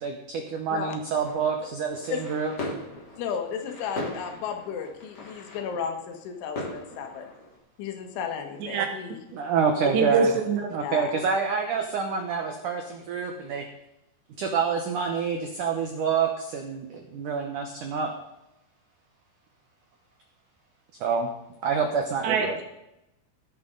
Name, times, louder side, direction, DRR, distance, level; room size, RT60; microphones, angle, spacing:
voice 1, 0.0-2.5 9.3-10.3 10.7-13.7 14.4-18.1 21.0-21.3 21.6-22.6, right 6 dB, 85° right, 3 dB, 1.8 m, -27 dB
sound 1, 1.1-7.6, left 1 dB, 35° left, 1.9 m, -39 dB
voice 2, 3.2-7.3 7.8-9.2 10.8-11.1, left 7 dB, 85° left, 5 dB, 3.9 m, -34 dB
voice 3, 9.9-10.6 22.2-22.6, right 5 dB, 70° right, 4 dB, 3.7 m, -24 dB
15.5 x 10.5 x 3.9 m, 0.86 s
omnidirectional pair, 5.3 m